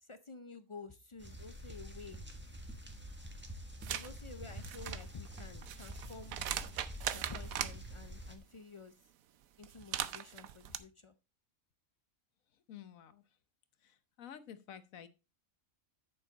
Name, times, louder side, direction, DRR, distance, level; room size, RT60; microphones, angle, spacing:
voice 1, 0.0-2.2 2.9-3.0 3.9-6.4 7.0-8.9 9.6-11.1, left 4 dB, 50° left, 11 dB, 0.3 m, -51 dB
sound 1, 1.2-8.4, equal, 10° right, 1.4 m, -47 dB
sound 2, 3.8-4.1 4.5-7.7 9.6-10.8, right 11 dB, 85° right, 1.1 m, -39 dB
voice 2, 12.5-13.2 13.8-15.1, left 9 dB, 80° left, 12 dB, 1.3 m, -51 dB
8.7 x 7.0 x 3.9 m, 0.28 s
omnidirectional pair, 1.4 m